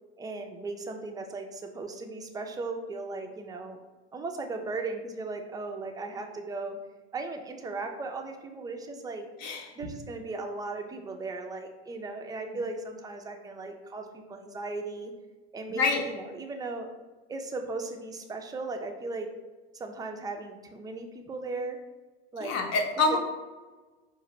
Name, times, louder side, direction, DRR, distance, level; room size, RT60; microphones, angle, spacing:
voice 1, 0.2-3.8 4.1-6.8 7.1-9.3 9.8-15.1 15.5-16.9 17.3-19.3 19.7-21.8 22.3-22.6 23.1-23.2, right 3 dB, 10° right, 3 dB, 0.4 m, -37 dB
voice 2, 15.7-16.0 22.4-23.2, left 3 dB, 50° left, 3 dB, 0.8 m, -26 dB
4.7 x 2.5 x 2.9 m, 1.3 s
hypercardioid pair, 85°, 32 cm